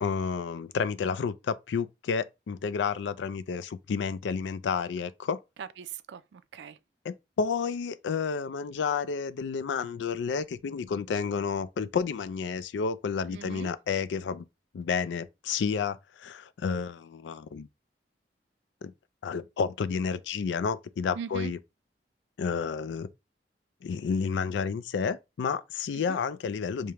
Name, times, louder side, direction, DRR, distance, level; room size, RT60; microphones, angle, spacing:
voice 1, 0.0-5.4 7.0-14.5 14.7-17.7 18.8-18.9 19.2-21.6 22.4-23.1 23.8-26.9, left 5 dB, 85° left, 0.3 m, -31 dB
voice 2, 5.6-6.8 13.3-13.7 21.2-21.5 26.1-26.2, right 7 dB, 75° right, 0.3 m, -40 dB
4.8 x 2.1 x 2.9 m
head